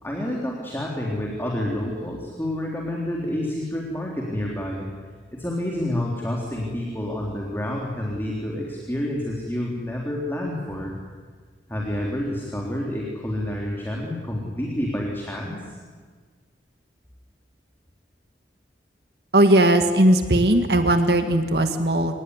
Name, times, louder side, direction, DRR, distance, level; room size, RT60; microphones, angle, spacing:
voice 1, 0.0-4.9 5.3-11.0 11.7-15.8, left 1 dB, 10° left, -2 dB, 3.7 m, -29 dB
voice 2, 19.3-22.2, right 1 dB, 60° right, 7 dB, 2.0 m, -18 dB
27.0 x 19.5 x 9.9 m, 1.5 s
head